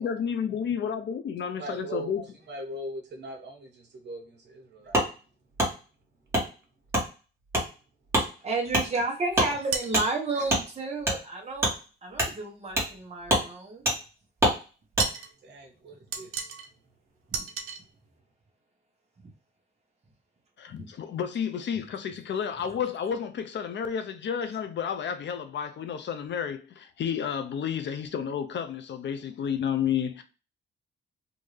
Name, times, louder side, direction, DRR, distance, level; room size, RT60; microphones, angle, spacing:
voice 1, 0.0-2.3 20.6-30.2, left 8 dB, 60° left, 0.6 m, -31 dB
voice 2, 1.6-2.1 2.5-5.0 10.3-10.5 15.4-16.5, right 1 dB, 55° right, 1.4 m, -40 dB
Wood, 4.9-5.1 5.6-5.7 6.3-6.5 6.9-7.1 7.5-7.7 8.1-8.3 8.7-8.9 9.3-9.5 9.9-10.0 10.5-10.6 11.0-11.2 11.6-11.7 12.1-12.3 12.7-12.9 13.2-13.4 13.8-14.0 14.4-14.6 14.9-15.1, right 1 dB, 10° right, 1.4 m, -24 dB
voice 3, 8.4-11.7 12.0-13.8 20.8-20.9, right 3 dB, 30° right, 1.2 m, -31 dB
sound 1, 9.7-10.2 15.0-15.3 16.1-16.7 17.3-17.8, right 6 dB, 85° right, 0.7 m, -32 dB
3.6 x 2.6 x 3.2 m
wide cardioid pair, 150°, 21 cm